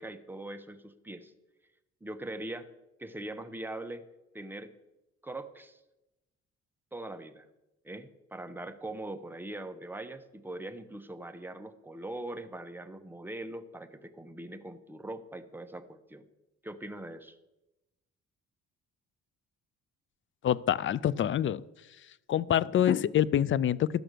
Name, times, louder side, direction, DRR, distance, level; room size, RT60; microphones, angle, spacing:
voice 1, 0.0-1.3 2.0-2.7 3.0-4.0 4.3-4.7 5.2-5.8 6.9-7.5 7.8-16.3 16.6-17.4, right 1 dB, 5° right, 9 dB, 0.8 m, -41 dB
voice 2, 20.4-21.6 22.3-24.0, left 10 dB, 40° left, 21 dB, 0.4 m, -26 dB
12.5 x 6.0 x 6.6 m, 0.99 s
cardioid pair, 90°, 30 cm